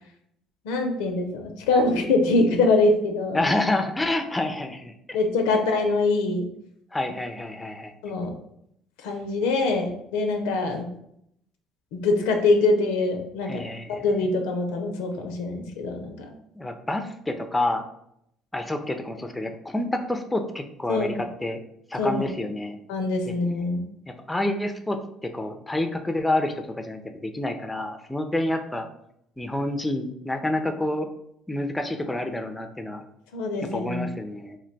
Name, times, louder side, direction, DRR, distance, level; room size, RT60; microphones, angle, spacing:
voice 1, 0.6-3.5 5.1-6.5 8.0-8.4 9.0-10.9 11.9-13.6 13.9-16.3 20.9-21.2 22.0-22.3 22.9-23.8 33.3-34.1, left 3 dB, 85° left, 5 dB, 0.4 m, -24 dB
voice 2, 3.3-4.9 6.9-7.9 13.4-14.0 16.5-17.8 18.5-21.6 21.9-22.8 24.3-28.9 29.4-31.1 31.5-33.0 33.7-34.6, left 1 dB, 10° left, 5 dB, 0.4 m, -28 dB
2.4 x 2.1 x 3.9 m, 0.74 s
supercardioid pair, 80°, 0 cm